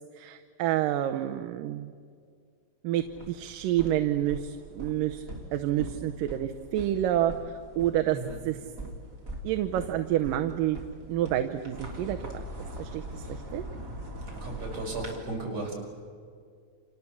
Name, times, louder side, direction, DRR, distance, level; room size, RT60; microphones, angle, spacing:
voice 1, 0.2-1.9 2.8-5.2 5.5-7.3 7.8-8.2 8.5-8.6 9.4-10.8 11.1-12.4 12.8-13.6, right 12 dB, 80° right, 6 dB, 2.5 m, -28 dB
sound 1, 2.9-15.1, right 1 dB, 25° right, 3.7 m, -42 dB
voice 2, 14.4-15.7, right 2 dB, 50° right, -1 dB, 6.3 m, -35 dB
29.5 x 27.0 x 7.2 m, 2.1 s
omnidirectional pair, 3.9 m